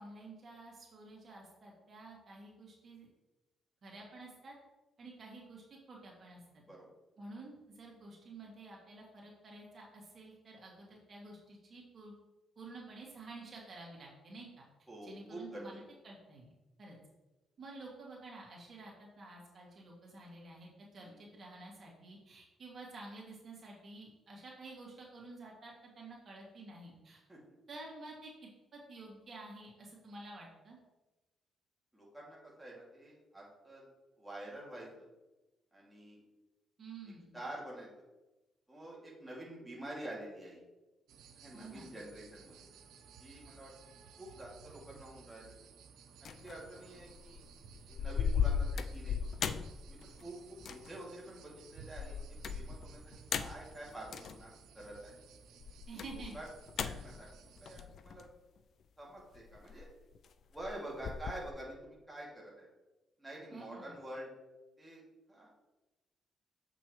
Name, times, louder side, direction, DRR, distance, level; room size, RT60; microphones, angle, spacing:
voice 1, 0.0-3.1 3.8-4.6 5.0-6.6 7.2-12.1 12.6-14.6 15.0-16.5 16.8-17.0 17.6-27.2 27.7-28.3 28.7-30.8 36.8-37.4 41.5-41.9 55.9-56.4 63.5-64.0, right 2 dB, 45° right, -3 dB, 2.2 m, -50 dB
voice 2, 14.9-15.6 21.0-21.2 27.3-27.4 31.9-33.9 34.2-35.1 35.7-36.2 37.3-37.9 38.7-40.6 41.4-42.6 43.2-43.7 44.2-45.5 46.2-47.4 47.9-49.3 49.9-52.2 52.5-53.1 53.4-55.1 55.9-56.4 56.8-58.2 59.0-59.9 60.5-62.7 63.2-64.3 64.8-65.0 65.3-65.5, right 1 dB, 5° right, -5 dB, 2.3 m, -48 dB
sound 1, 41.1-57.9, right 6 dB, 85° right, 0.7 m, -57 dB
sound 2, 46.3-46.6 47.0-47.4 47.7-50.3 50.6-51.0 51.8-54.4 55.6-58.3 59.4-60.3 60.6-61.5, left 7 dB, 60° left, 0.4 m, -37 dB
7.6 x 6.0 x 3.1 m, 1.1 s
cardioid pair, 90°, 0 cm